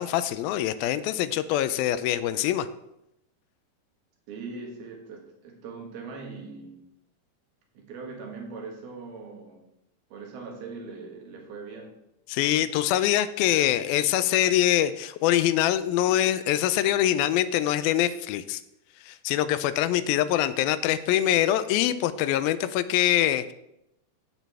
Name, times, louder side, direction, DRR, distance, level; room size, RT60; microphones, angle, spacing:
voice 1, 0.0-2.7 12.3-18.6 19.1-23.5, left 12 dB, 85° left, 13 dB, 2.4 m, -24 dB
voice 2, 4.3-6.9 7.8-9.7 10.1-12.0, right 4 dB, 85° right, 1 dB, 3.5 m, -41 dB
15.0 x 6.2 x 3.4 m, 0.84 s
omnidirectional pair, 4.3 m